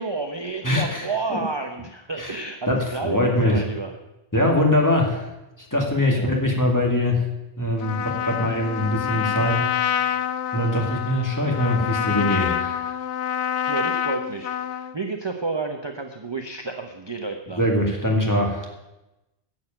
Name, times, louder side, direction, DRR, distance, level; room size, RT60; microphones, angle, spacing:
voice 1, 0.0-3.9 6.1-6.3 13.7-17.6, right 3 dB, 25° right, 5 dB, 0.8 m, -30 dB
voice 2, 0.6-1.4 2.2-2.4 2.7-3.6 4.3-5.3 5.6-7.3 7.6-10.2 10.5-13.0 17.6-18.7, left 1 dB, 15° left, 0 dB, 2.2 m, -23 dB
Trumpet, 7.8-15.0, left 10 dB, 80° left, 0.9 m, -27 dB
10.5 x 7.7 x 8.9 m, 0.99 s
omnidirectional pair, 1.1 m